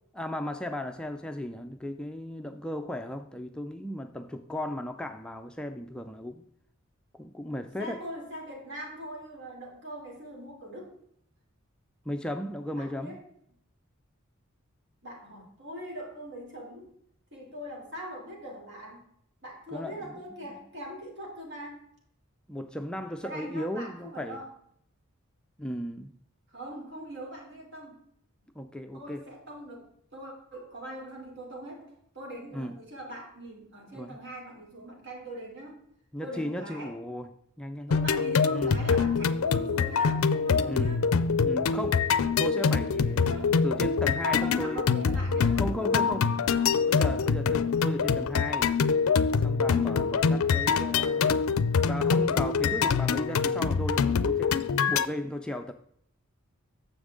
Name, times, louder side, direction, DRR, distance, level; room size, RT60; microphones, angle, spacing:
voice 1, 0.1-6.4 7.1-8.0 12.1-13.2 19.7-20.1 22.5-24.4 25.6-26.1 28.6-29.2 32.5-32.7 33.9-34.2 36.1-37.3 37.6-38.2 38.5-38.7 40.6-41.0 41.4-42.1 42.4-44.8 45.5-46.4 46.8-48.7 49.4-51.5 51.9-54.6 54.9-55.7, left 1 dB, 5° left, 0.4 m, -35 dB
voice 2, 7.8-10.9 12.8-13.2 15.0-16.9 17.3-19.0 19.4-21.8 23.2-24.5 26.5-28.0 28.9-35.8 36.2-37.0 37.9-41.0 43.3-43.6 44.2-46.9, right 1 dB, 55° right, 3.5 m, -41 dB
sound 1, 37.9-55.1, left 5 dB, 70° left, 0.4 m, -25 dB
9.6 x 7.1 x 3.7 m
head